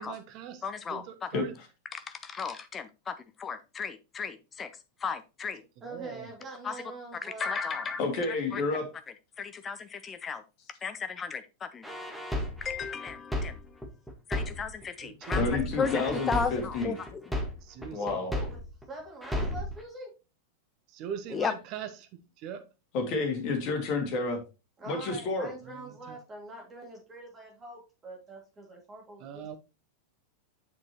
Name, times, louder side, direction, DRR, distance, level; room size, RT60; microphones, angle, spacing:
voice 1, 0.0-1.5 5.9-6.3 15.0-15.8 16.1-16.3 17.6-18.3 20.9-22.6 25.6-26.2 29.2-29.6, right 9 dB, 40° right, 1.0 m, -42 dB
voice 2, 0.6-1.3 1.9-4.7 5.0-5.6 6.6-6.8 7.2-8.0 8.5-8.6 9.4-10.4 10.8-11.8 12.6-13.9 14.3-17.3 21.3-21.5, left 6 dB, 20° left, 0.5 m, -35 dB
voice 3, 5.8-7.5 18.0-18.6 18.9-20.1 24.8-29.6, right 2 dB, 20° right, 3.4 m, -44 dB
voice 4, 8.0-8.9 15.3-16.9 17.9-18.3 22.9-24.4 24.9-25.5, left 3 dB, 40° left, 2.1 m, -30 dB
sound 1, 11.8-14.8 15.2-18.8 19.2-19.8, left 1 dB, ahead, 1.7 m, -33 dB
7.5 x 6.1 x 3.0 m
figure-of-eight pair, 90°, 0 cm